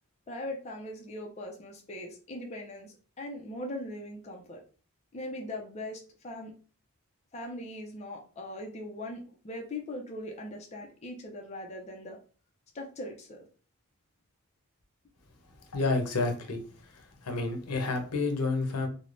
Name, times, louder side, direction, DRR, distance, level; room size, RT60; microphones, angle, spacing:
voice 1, 0.3-4.6 5.1-6.5 7.3-12.2 12.7-13.4, left 1 dB, 30° left, 1 dB, 0.4 m, -40 dB
voice 2, 15.7-16.6 17.2-18.9, left 3 dB, 85° left, 4 dB, 0.7 m, -29 dB
3.1 x 2.0 x 2.5 m, 0.39 s
head